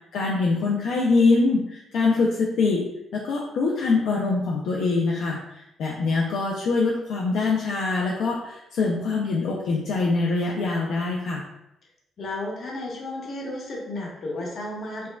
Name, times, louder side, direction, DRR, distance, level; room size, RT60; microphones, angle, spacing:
voice 1, 0.1-2.8 3.1-11.4, left 3 dB, 80° left, -2 dB, 0.5 m, -24 dB
voice 2, 12.2-15.1, left 1 dB, 55° left, -2 dB, 1.2 m, -33 dB
5.3 x 2.3 x 2.2 m, 0.85 s
cardioid pair, 90°, 0 cm